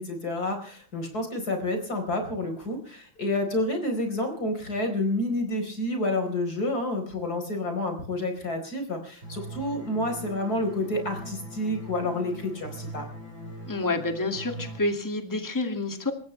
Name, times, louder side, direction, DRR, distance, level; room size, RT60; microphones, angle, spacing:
voice 1, 0.0-13.1, left 1 dB, 50° left, 5 dB, 4.9 m, -29 dB
sound 1, 9.2-14.8, right 1 dB, 35° right, 7.6 m, -41 dB
voice 2, 13.6-16.1, left 2 dB, 10° left, 5 dB, 2.2 m, -28 dB
28.5 x 15.0 x 3.3 m, 0.43 s
omnidirectional pair, 2.2 m